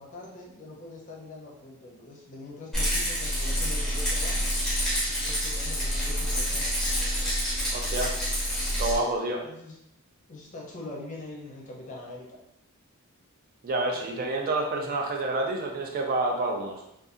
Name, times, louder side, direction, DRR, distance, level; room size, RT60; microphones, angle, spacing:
voice 1, 0.0-4.5 5.1-6.8 9.4-9.8 10.3-12.4 13.9-15.0, left 2 dB, 35° left, -3 dB, 0.6 m, -43 dB
Rattle, 2.7-9.0, equal, ahead, 0.8 m, -27 dB
voice 2, 7.7-8.2 8.8-9.4 13.6-16.8, right 2 dB, 40° right, 1 dB, 0.4 m, -28 dB
2.6 x 2.3 x 2.4 m, 0.82 s
head